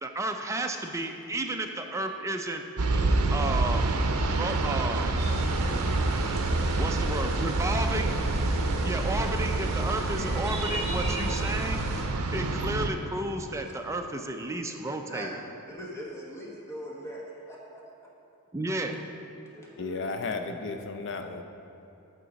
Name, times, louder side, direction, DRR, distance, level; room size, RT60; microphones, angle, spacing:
voice 1, 0.0-2.6 3.3-5.2 6.8-8.1 8.8-11.8 12.3-15.3 18.5-19.0, right 2 dB, 15° right, 4 dB, 0.4 m, -32 dB
sound 1, 2.8-12.9, right 2 dB, 80° right, 0.6 m, -27 dB
voice 2, 2.9-3.3 13.4-13.5 15.1-17.2 17.5-17.8 19.4-20.2, equal, 15° left, -4 dB, 1.2 m, -42 dB
sound 2, 5.2-12.0, right 1 dB, 30° right, 1.4 m, -35 dB
voice 3, 19.8-21.4, left 3 dB, 55° left, 6 dB, 0.6 m, -34 dB
9.1 x 3.7 x 6.9 m, 2.9 s
head